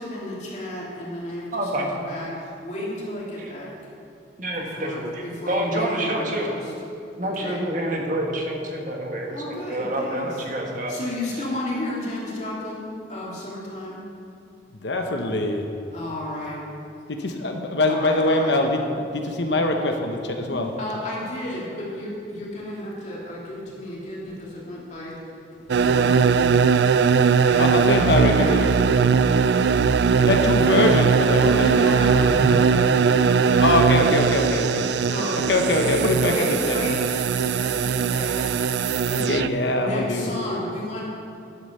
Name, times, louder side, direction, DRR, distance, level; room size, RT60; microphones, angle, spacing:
voice 1, 0.0-3.8 4.6-6.7 7.2-7.6 9.3-10.4 10.9-14.0 15.9-16.7 17.8-18.5 20.5-25.2 25.6-26.9 27.4-28.6 29.0-29.5 29.8-30.9 31.3-34.5 35.0-35.4 35.6-36.0 36.2-37.0 37.3-38.6 39.1-39.2 39.7-41.0, left 1 dB, 40° left, -5 dB, 2.8 m, -33 dB
voice 2, 1.5-1.9 3.4-3.5 4.4-6.5 7.2-11.0, right 1 dB, 45° right, 1 dB, 1.5 m, -28 dB
voice 3, 14.8-15.7 17.2-20.7 27.6-28.7 30.3-32.0 33.6-34.9 35.5-36.8 39.2-40.3, left 2 dB, 75° left, 4 dB, 1.0 m, -23 dB
sound 1, 25.7-39.5, right 6 dB, 70° right, 0.3 m, -20 dB
11.0 x 7.9 x 6.7 m, 2.6 s
head